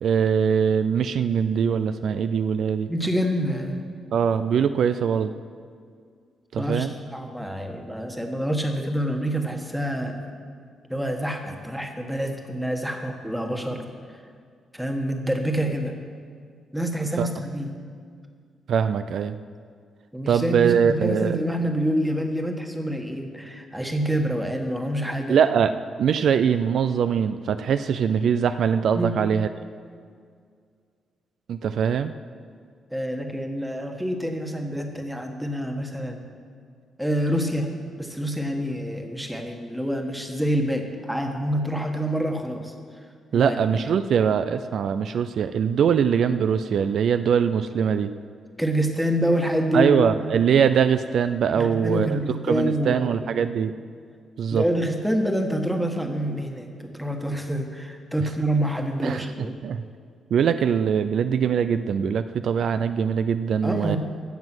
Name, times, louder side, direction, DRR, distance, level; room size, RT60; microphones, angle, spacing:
voice 1, 0.0-2.9 4.1-5.3 6.5-6.9 17.2-17.3 18.7-19.4 20.3-21.4 25.3-29.5 31.5-32.1 43.3-48.1 49.7-52.2 52.5-53.7 54.4-54.6 59.0-59.8 60.3-64.0, right 7 dB, 70° right, 11 dB, 0.4 m, -22 dB
voice 2, 2.9-3.8 6.6-10.2 10.9-13.9 14.7-15.9 16.7-17.7 20.1-25.4 28.9-29.1 32.9-36.3 37.0-37.7 38.0-42.7 43.3-43.5 48.6-50.3 51.5-53.1 54.5-59.5 63.6-64.0, equal, 5° right, 4 dB, 1.5 m, -27 dB
15.5 x 7.4 x 6.2 m, 2.1 s
cardioid pair, 95°, 0 cm